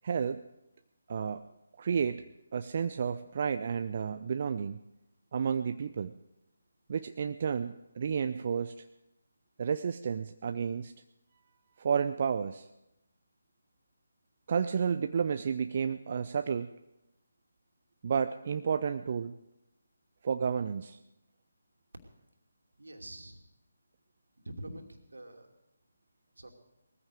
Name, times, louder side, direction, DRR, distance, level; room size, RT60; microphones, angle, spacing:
voice 1, 0.0-0.4 1.1-2.2 2.5-4.8 5.3-6.1 6.9-8.8 9.6-10.9 11.8-12.7 14.5-16.7 18.0-19.3 20.2-21.0, right 6 dB, 40° right, 9 dB, 0.5 m, -31 dB
voice 2, 22.8-23.4 24.4-25.5 26.4-26.5, right 1 dB, 70° right, 3 dB, 2.7 m, -45 dB
19.5 x 14.5 x 4.9 m, 0.92 s
figure-of-eight pair, 150°, 0 cm